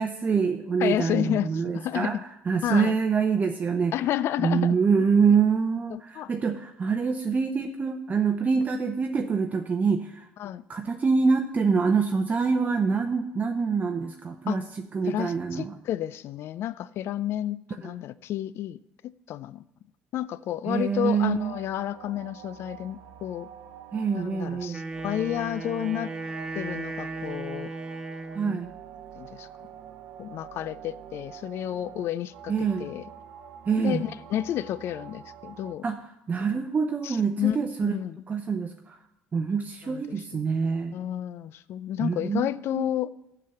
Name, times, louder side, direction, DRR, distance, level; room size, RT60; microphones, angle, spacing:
voice 1, 0.0-2.2 2.5-3.9 4.4-10.3 10.7-14.6 14.9-15.7 17.8-17.9 20.7-21.5 23.9-24.8 28.3-28.7 32.5-32.9 33.7-34.0 35.8-36.0 36.3-37.9 38.3-39.0 39.3-41.0 42.0-42.8, right 5 dB, 35° right, 5 dB, 0.7 m, -25 dB
voice 2, 0.8-2.1 2.6-3.0 3.9-4.8 5.9-6.3 10.4-10.6 14.5-14.6 15.0-18.8 19.3-19.6 20.1-23.5 24.1-26.1 26.5-27.7 28.4-28.6 29.1-29.5 30.2-33.0 33.8-35.8 36.5-36.6 37.0-37.6 37.8-38.2 39.8-40.5 40.9-43.1, left 12 dB, 60° left, 18 dB, 0.4 m, -31 dB
sound 1, 21.2-35.7, right 9 dB, 75° right, 0.7 m, -46 dB
Wind instrument woodwind instrument, 24.7-28.7, right 3 dB, 15° right, 1.3 m, -36 dB
7.4 x 6.0 x 7.8 m, 0.83 s
hypercardioid pair, 65°, 5 cm